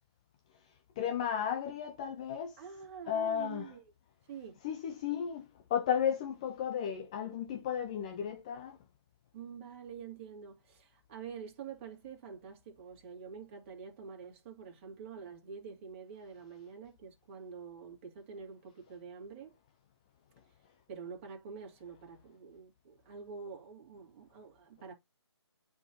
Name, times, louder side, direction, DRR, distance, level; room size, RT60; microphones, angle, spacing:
voice 1, 1.0-2.6 3.1-3.7 4.6-8.8, left 8 dB, 15° left, 0.4 m, -34 dB
voice 2, 2.6-3.8 4.3-4.6 9.3-19.5 20.9-24.9, right 6 dB, 25° right, 2.5 m, -47 dB
8.8 x 4.3 x 2.8 m
figure-of-eight pair, 150°, 14 cm